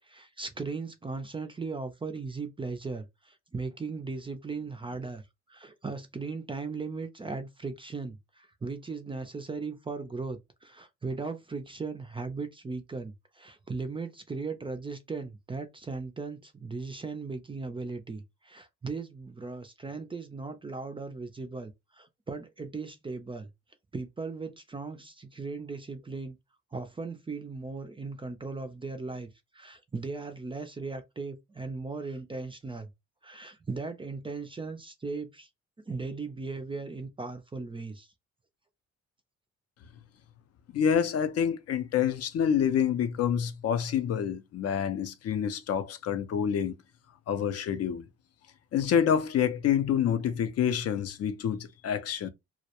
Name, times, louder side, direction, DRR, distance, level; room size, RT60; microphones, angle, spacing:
voice 1, 0.1-5.2 5.5-23.5 23.9-26.4 26.7-32.9 33.2-35.5 35.9-38.1, right 4 dB, 20° right, 0.4 m, -37 dB
voice 2, 40.7-46.8 47.3-48.1 48.7-52.3, left 8 dB, 55° left, 0.5 m, -27 dB
2.2 x 2.1 x 2.8 m
cardioid pair, 90°, 30 cm